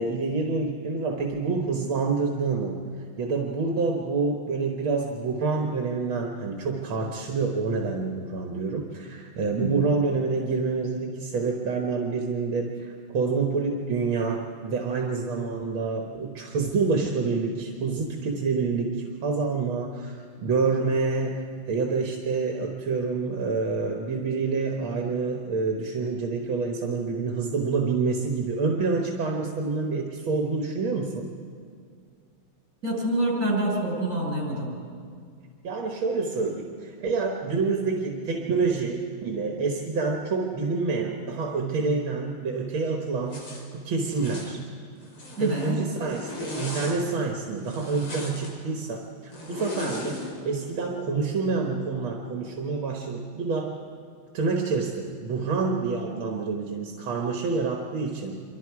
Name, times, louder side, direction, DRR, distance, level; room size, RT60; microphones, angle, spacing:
voice 1, 0.0-2.8 3.2-19.0 19.2-31.3 35.6-44.6 45.4-53.7 54.3-58.4, right 4 dB, 75° right, 1 dB, 2.2 m, -27 dB
voice 2, 9.6-9.9 32.8-34.7 45.4-45.9, right 1 dB, 40° right, -2 dB, 6.3 m, -27 dB
Zipper (clothing), 43.3-43.6 44.1-44.5 45.0-45.7 46.1-47.0 47.6-48.5 49.3-50.3, left 3 dB, 85° left, 4.3 m, -37 dB
27.0 x 24.5 x 4.8 m, 2.2 s
omnidirectional pair, 2.2 m